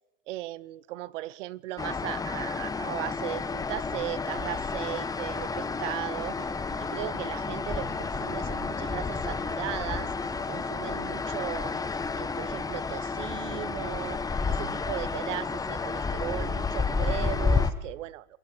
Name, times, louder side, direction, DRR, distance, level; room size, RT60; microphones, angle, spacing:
voice 1, 0.3-6.4 6.8-10.1 10.5-11.8 12.1-18.4, right 16 dB, 60° right, 21 dB, 1.1 m, -37 dB
sound 1, 1.8-17.7, left 4 dB, 10° left, 1.0 m, -31 dB
sound 2, 5.5-10.6, right 16 dB, 40° right, 2.0 m, -52 dB
27.5 x 22.5 x 4.5 m, 0.91 s
hypercardioid pair, 125°, 41 cm